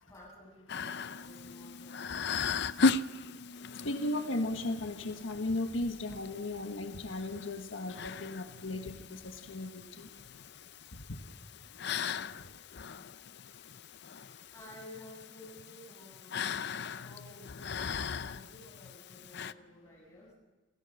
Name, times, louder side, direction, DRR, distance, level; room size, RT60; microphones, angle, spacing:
voice 1, 0.1-2.5 2.8-2.9 14.5-16.5 17.0-20.3, left 1 dB, 15° left, -2 dB, 7.5 m, -53 dB
sound 1, 0.7-19.5, left 4 dB, 60° left, 0.6 m, -38 dB
voice 2, 3.8-10.1 10.9-11.2 12.2-13.2 13.4-13.5, left 1 dB, 85° left, 5 dB, 1.6 m, -37 dB
29.5 x 17.5 x 6.6 m, 1.3 s
head